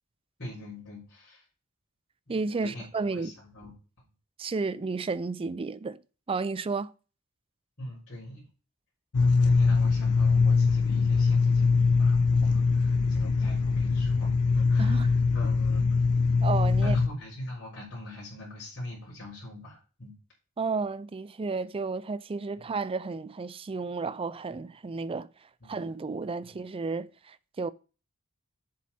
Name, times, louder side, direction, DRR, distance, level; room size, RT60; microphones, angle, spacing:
voice 1, 0.4-1.4 2.3-3.7 7.8-8.5 9.4-16.0 16.8-20.1 25.6-25.8 26.4-26.5, left 1 dB, 55° left, 4.2 m, -42 dB
voice 2, 2.3-3.3 4.4-6.0 6.3-6.9 14.8-15.1 16.4-17.0 20.6-25.3 25.7-27.7, right 4 dB, 25° right, 0.4 m, -32 dB
sound 1, 9.1-17.1, left 4 dB, 85° left, 0.8 m, -23 dB
7.4 x 7.4 x 4.2 m
head